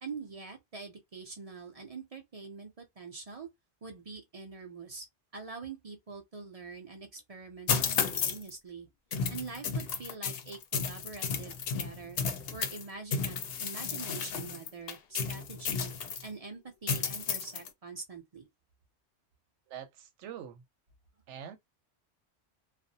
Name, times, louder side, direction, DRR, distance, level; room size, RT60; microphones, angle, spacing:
voice 1, 0.0-3.5 3.8-5.1 5.3-8.9 9.3-12.2 12.5-18.5, right 4 dB, 45° right, 0.5 m, -44 dB
sound 1, 7.7-8.5 9.1-12.8 13.1-16.3 16.9-17.7, left 6 dB, 65° left, 0.7 m, -33 dB
voice 2, 19.7-20.6 21.3-21.6, right 9 dB, 90° right, 0.9 m, -44 dB
2.4 x 2.0 x 2.6 m
omnidirectional pair, 1.2 m